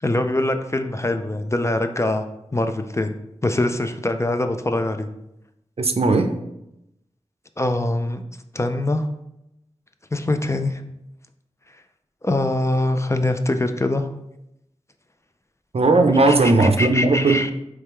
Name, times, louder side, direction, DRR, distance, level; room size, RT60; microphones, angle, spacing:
voice 1, 0.0-2.2 2.5-3.1 3.4-5.1 7.6-8.2 8.5-9.1 10.1-10.8 12.2-14.1 16.3-17.5, left 2 dB, 25° left, 7 dB, 0.4 m, -23 dB
voice 2, 5.8-6.4 15.7-17.4, right 3 dB, 55° right, 6 dB, 0.5 m, -17 dB
3.5 x 3.2 x 4.4 m, 0.84 s
wide cardioid pair, 50°, 12 cm